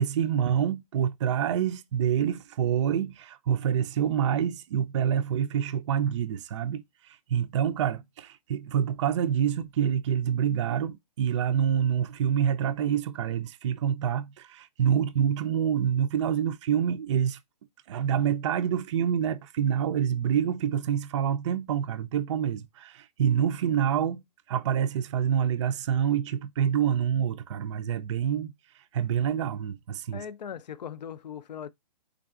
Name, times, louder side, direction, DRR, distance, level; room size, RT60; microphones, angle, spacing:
voice 1, 0.0-17.4 17.9-24.2 24.5-28.5 28.9-30.2, right 9 dB, 45° right, 0.4 m, -27 dB
voice 2, 30.1-31.7, left 8 dB, 85° left, 0.4 m, -39 dB
3.7 x 3.5 x 2.3 m
hypercardioid pair, 140°, 21 cm